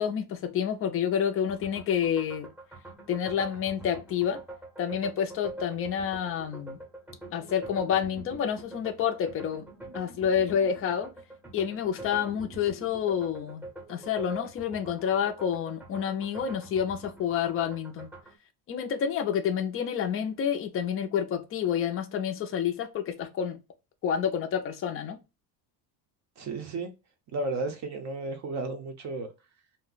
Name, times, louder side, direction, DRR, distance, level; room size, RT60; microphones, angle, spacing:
voice 1, 0.0-2.5 3.1-4.4 4.8-6.8 7.3-9.6 9.9-11.1 11.5-18.1 18.7-23.6 24.0-25.2, left 8 dB, 35° left, 0.4 m, -29 dB
sound 1, 1.5-18.4, right 2 dB, 5° right, 0.7 m, -45 dB
voice 2, 26.4-26.9 27.3-29.3, right 2 dB, 40° right, 0.5 m, -33 dB
2.6 x 2.1 x 3.8 m
cardioid pair, 165°, 44 cm